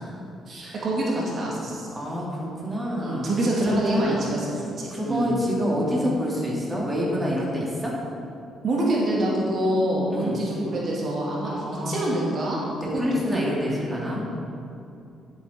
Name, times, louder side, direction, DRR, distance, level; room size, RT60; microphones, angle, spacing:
voice 1, 0.5-1.9 3.0-4.5 4.8-5.3 8.6-11.5 11.9-13.4, right 1 dB, 55° right, -4 dB, 2.1 m, -26 dB
voice 2, 1.9-4.2 4.9-7.9 10.1-10.4 11.4-12.3 13.0-14.2, equal, 10° right, -5 dB, 2.6 m, -27 dB
10.5 x 7.9 x 4.4 m, 2.6 s
cardioid pair, 90°, 0 cm